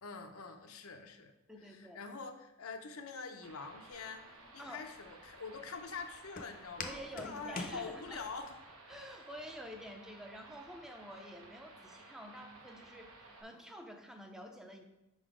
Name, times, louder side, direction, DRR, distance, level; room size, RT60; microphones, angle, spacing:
voice 1, 0.0-1.3 1.6-4.2 4.5-8.5, left 4 dB, 80° left, 6 dB, 0.7 m, -45 dB
voice 2, 1.5-2.0 4.6-4.9 6.8-8.2 8.9-14.9, equal, ahead, 4 dB, 0.5 m, -49 dB
sound 1, 3.4-13.4, right 2 dB, 85° right, 1.2 m, -56 dB
Walk footsteps, 3.9-8.5, left 4 dB, 40° left, 0.6 m, -47 dB
5.4 x 4.0 x 4.9 m, 0.96 s
head